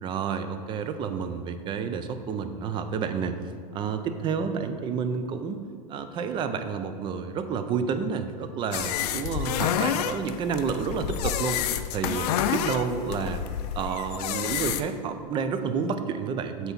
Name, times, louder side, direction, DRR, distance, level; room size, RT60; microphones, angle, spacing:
voice 1, 0.0-3.4 3.7-5.6 5.9-11.6 11.9-13.4 13.7-16.7, right 6 dB, 25° right, 9 dB, 0.4 m, -30 dB
sound 1, 8.7-14.8, left 10 dB, 70° left, 0.4 m, -29 dB
7.6 x 2.8 x 5.8 m, 2.1 s
supercardioid pair, 140°, 21 cm